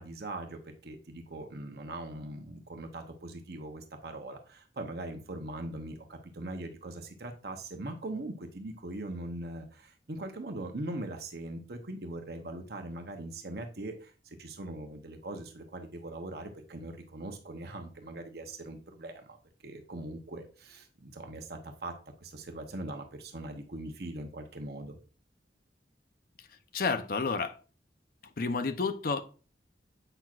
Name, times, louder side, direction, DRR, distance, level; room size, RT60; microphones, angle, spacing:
voice 1, 0.0-19.4 19.6-25.0, right 2 dB, 60° right, 5 dB, 0.9 m, -41 dB
voice 2, 26.4-27.6 28.2-29.2, left 4 dB, 55° left, 8 dB, 0.6 m, -31 dB
7.8 x 6.0 x 2.4 m, 0.36 s
head